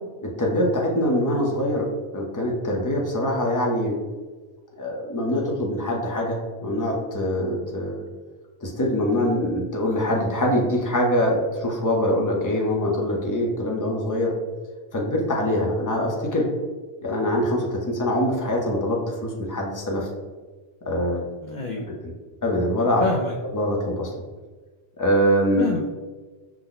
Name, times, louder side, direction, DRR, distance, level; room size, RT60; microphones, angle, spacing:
voice 1, 0.2-1.9 2.1-3.9 4.8-8.0 8.6-14.3 14.9-16.4 17.0-20.1 20.8-21.3 22.0-22.1 22.4-23.0 23.5-24.1 25.0-25.6, equal, 20° left, -1 dB, 0.7 m, -23 dB
voice 2, 21.4-21.9 23.0-23.3 23.6-23.7 25.6-25.8, left 3 dB, 55° left, 0 dB, 0.6 m, -27 dB
5.9 x 2.1 x 3.9 m, 1.3 s
omnidirectional pair, 1.1 m